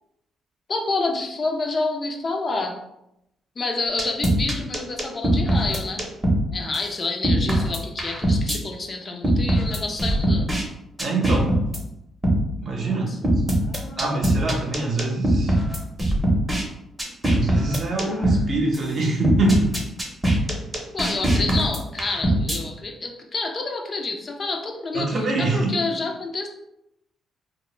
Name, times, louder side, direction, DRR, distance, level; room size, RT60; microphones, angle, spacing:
voice 1, 0.7-2.8 3.6-6.1 6.5-10.6 12.8-13.2 13.6-14.2 18.0-18.3 20.9-26.5, left 3 dB, 40° left, 3 dB, 0.4 m, -29 dB
sound 1, 4.0-6.4 6.7-6.8 7.2-8.6 9.2-10.6 11.0-11.8 12.2-12.4 13.2-16.6 17.0-18.4 18.7-18.8 19.2-22.6, right 1 dB, 15° right, 0.6 m, -21 dB
voice 2, 11.0-11.5 12.6-13.1 14.0-15.6 17.2-19.7 24.9-25.7, right 2 dB, 55° right, 0 dB, 0.7 m, -24 dB
2.1 x 2.0 x 3.0 m, 0.82 s
cardioid pair, 90°, 0 cm